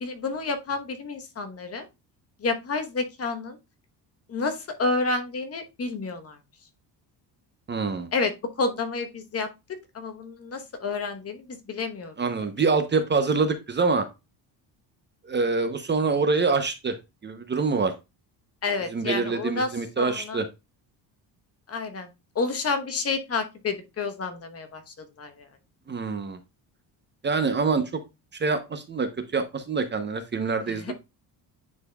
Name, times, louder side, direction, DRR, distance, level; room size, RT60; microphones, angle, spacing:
voice 1, 0.0-1.8 2.4-3.6 4.3-6.4 8.1-9.5 9.9-12.1 18.6-20.4 21.7-22.1 22.3-25.5 30.7-30.9, left 3 dB, 35° left, 7 dB, 1.1 m, -30 dB
voice 2, 7.7-8.1 12.2-14.0 15.2-17.0 17.2-17.9 18.9-20.5 25.9-26.4 27.2-28.0 28.3-30.9, right 4 dB, 25° right, 8 dB, 0.7 m, -25 dB
9.8 x 4.2 x 2.3 m, 0.24 s
cardioid pair, 130°, 42 cm